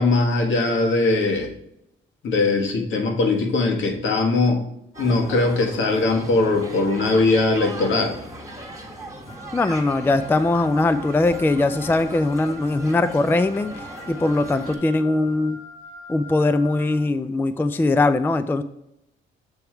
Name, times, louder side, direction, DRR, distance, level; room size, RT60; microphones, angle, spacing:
voice 1, 0.0-1.5 2.2-4.6 5.0-8.2, left 3 dB, 70° left, 2 dB, 1.4 m, -20 dB
sound 1, 4.9-14.8, right 1 dB, 15° right, 1.5 m, -38 dB
Wind instrument woodwind instrument, 9.3-17.0, equal, 90° left, 2.0 m, -43 dB
voice 2, 9.5-15.6 16.1-18.6, left 2 dB, 10° left, 10 dB, 0.3 m, -21 dB
7.0 x 3.5 x 4.4 m, 0.82 s
cardioid pair, 90°, 20 cm